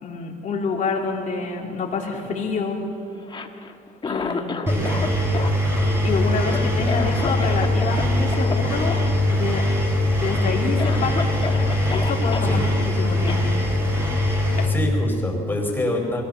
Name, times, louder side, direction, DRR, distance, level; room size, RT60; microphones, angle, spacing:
voice 1, 0.0-2.9 4.1-4.7 6.0-9.0 9.3-9.7 10.1-11.4 11.9-12.6 13.0-13.5 13.9-14.1 14.6-14.7, left 4 dB, 50° left, -1 dB, 3.6 m, -27 dB
Cough, 3.2-5.1 5.3-8.0 8.3-8.5 8.9-9.1 9.4-9.9 10.3-10.4 10.8-12.5 13.3-13.4, left 5 dB, 30° left, 1.4 m, -31 dB
voice 2, 4.7-5.1 12.4-12.7 14.6-16.2, left 1 dB, 10° left, 0 dB, 4.9 m, -26 dB
Engine, 4.7-14.7, left 1 dB, 15° right, 4.9 m, -22 dB
22.5 x 17.0 x 7.0 m, 2.4 s
cardioid pair, 110°, 17 cm